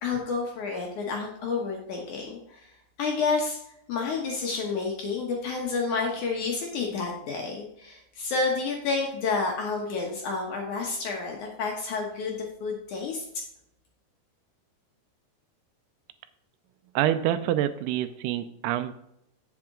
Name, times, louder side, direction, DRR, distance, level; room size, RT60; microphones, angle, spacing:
voice 1, 0.0-2.7 3.0-3.6 3.9-13.3, left 4 dB, 65° left, 0 dB, 2.0 m, -30 dB
voice 2, 17.0-18.9, right 12 dB, 85° right, 11 dB, 2.6 m, -26 dB
7.8 x 7.6 x 3.7 m, 0.77 s
omnidirectional pair, 4.7 m